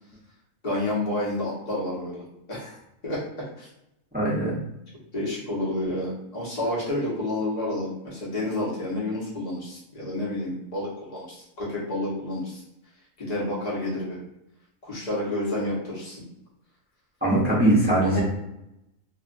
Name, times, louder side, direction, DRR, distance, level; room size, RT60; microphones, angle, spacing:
voice 1, 0.6-2.2 2.5-2.8 3.0-3.2 3.6-3.7 5.1-12.6 13.2-14.2 14.8-16.2 17.9-18.2, left 1 dB, 35° left, -6 dB, 1.0 m, -29 dB
voice 2, 4.1-4.6 17.2-18.2, right 1 dB, 10° right, -7 dB, 0.6 m, -21 dB
2.8 x 2.4 x 2.5 m, 0.86 s
omnidirectional pair, 1.5 m